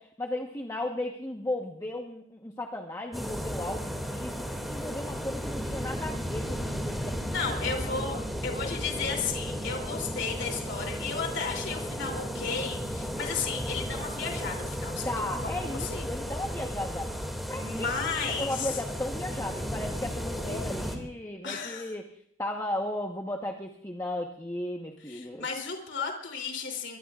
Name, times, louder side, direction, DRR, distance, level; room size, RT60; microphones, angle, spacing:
voice 1, 0.0-7.4 8.1-8.2 15.0-17.2 17.5-17.9 18.4-22.0 22.4-25.5, left 1 dB, 15° left, 1 dB, 1.2 m, -35 dB
sound 1, 3.1-21.0, equal, ahead, 2.3 m, -34 dB
voice 2, 7.3-8.2 8.4-16.0 17.6-18.7 20.3-20.7 21.4-21.9 25.0-27.0, left 5 dB, 65° left, 2 dB, 3.2 m, -34 dB
23.5 x 23.0 x 2.5 m, 0.66 s
head